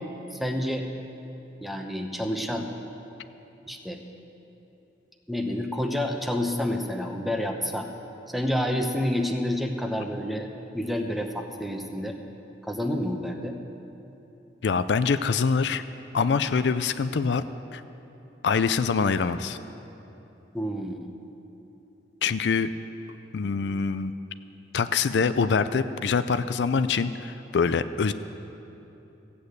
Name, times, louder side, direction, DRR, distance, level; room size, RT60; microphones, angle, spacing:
voice 1, 0.3-0.8 1.6-2.7 3.7-4.0 5.3-7.9 8.3-10.5 10.7-12.2 12.6-13.5 20.5-21.1, left 1 dB, ahead, 3 dB, 0.9 m, -29 dB
voice 2, 14.6-15.8 16.1-17.4 17.7-17.8 18.4-19.6 22.2-22.7 23.3-24.1 24.7-28.1, left 5 dB, 70° left, 12 dB, 0.4 m, -24 dB
15.0 x 8.6 x 8.0 m, 2.9 s
head